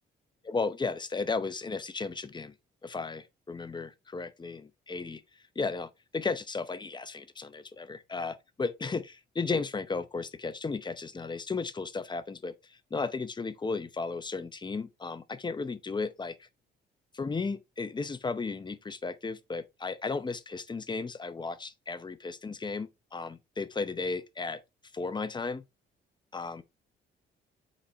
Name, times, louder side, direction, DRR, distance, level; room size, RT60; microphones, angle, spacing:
voice 1, 0.5-2.5 2.8-5.2 5.6-16.5 17.1-24.6 24.9-25.6 26.3-26.6, left 4 dB, 20° left, 0.7 m, -34 dB
7.7 x 4.3 x 3.1 m
cardioid pair, 90°, 20 cm